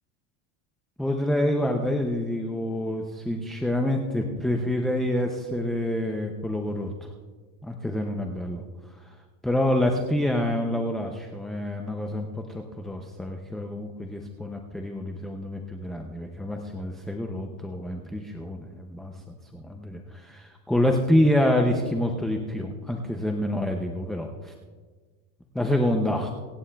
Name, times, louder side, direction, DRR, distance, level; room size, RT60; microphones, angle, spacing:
voice 1, 1.0-6.9 7.6-8.6 9.4-24.5 25.5-26.3, left 1 dB, ahead, 2 dB, 0.3 m, -27 dB
25.0 x 9.6 x 2.2 m, 1.4 s
supercardioid pair, 145°, 40 cm